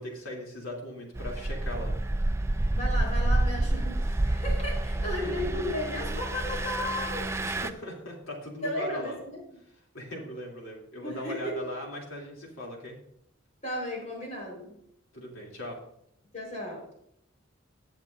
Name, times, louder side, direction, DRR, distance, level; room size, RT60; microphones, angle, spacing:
voice 1, 0.0-1.9 7.4-9.2 9.9-13.0 15.1-15.8, left 1 dB, 80° left, -1 dB, 3.0 m, -39 dB
Engine, 1.1-7.7, right 1 dB, 15° right, 0.3 m, -28 dB
voice 2, 2.7-7.3 8.6-9.4 11.0-11.5 13.6-14.7 16.3-16.8, left 1 dB, 35° left, -1 dB, 4.3 m, -34 dB
19.0 x 7.3 x 2.6 m, 0.73 s
head